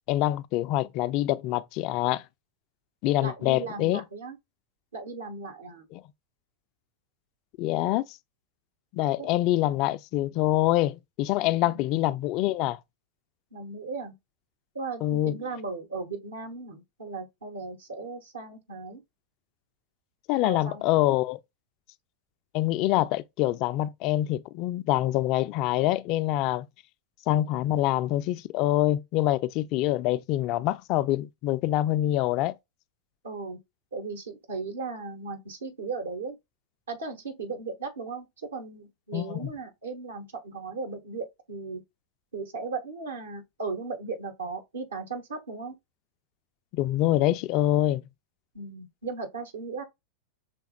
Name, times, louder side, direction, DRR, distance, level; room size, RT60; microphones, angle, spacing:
voice 1, 0.1-2.2 3.0-4.0 5.9-6.0 7.6-8.0 8.9-12.8 15.0-15.3 20.3-21.4 22.5-26.7 27.3-32.6 39.1-39.5 46.7-48.0, left 14 dB, 40° left, 0.3 m, -25 dB
voice 2, 3.2-4.4 4.9-5.8 9.2-9.3 11.4-11.8 13.5-14.1 14.7-19.0 20.4-21.0 33.2-33.6 33.9-36.3 36.9-41.8 42.3-45.7 48.5-49.8, right 4 dB, 70° right, 1.5 m, -37 dB
5.8 x 3.4 x 2.3 m
figure-of-eight pair, 90°, 0 cm